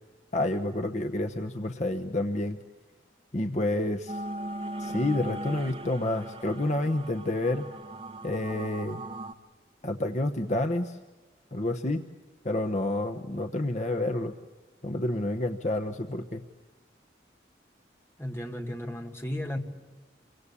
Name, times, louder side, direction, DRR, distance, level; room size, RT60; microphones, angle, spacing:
voice 1, 0.3-2.6 3.3-4.2 4.8-7.7 8.2-9.0 9.8-11.0 11.5-12.0 12.4-14.3 14.8-16.4, left 1 dB, 40° left, 6 dB, 1.0 m, -29 dB
sound 1, 4.1-9.3, right 1 dB, 30° right, 1.3 m, -38 dB
voice 2, 18.2-19.6, left 1 dB, 15° left, 3 dB, 2.0 m, -34 dB
28.5 x 24.0 x 8.5 m, 1.2 s
head